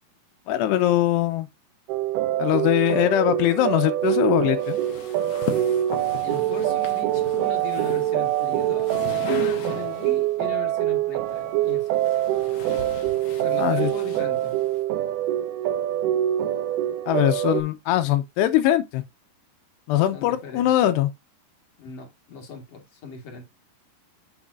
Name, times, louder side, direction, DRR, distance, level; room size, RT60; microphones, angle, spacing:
voice 1, 0.5-1.5 2.4-4.8 13.6-13.9 17.1-19.0 19.9-21.1, left 13 dB, 90° left, 2.9 m, -21 dB
sound 1, 1.9-17.6, right 12 dB, 75° right, 2.5 m, -25 dB
sound 2, 4.6-10.2 11.3-14.8, left 8 dB, 70° left, 1.6 m, -38 dB
voice 2, 6.2-12.0 13.3-14.5 20.1-20.7 21.8-23.4, left 6 dB, 45° left, 2.4 m, -38 dB
7.3 x 7.1 x 2.6 m
omnidirectional pair, 4.8 m